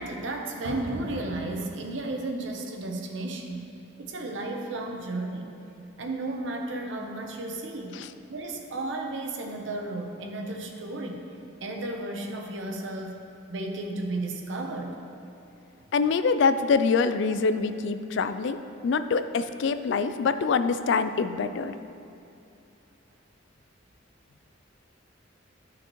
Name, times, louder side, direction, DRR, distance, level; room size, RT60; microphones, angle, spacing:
voice 1, 0.0-3.7 4.0-5.5 6.0-8.0 8.3-11.3 11.6-13.2 13.5-15.0, right 2 dB, 65° right, 2 dB, 0.8 m, -33 dB
voice 2, 15.9-21.8, left 5 dB, 60° left, 11 dB, 0.3 m, -25 dB
13.0 x 5.8 x 3.0 m, 2.7 s
head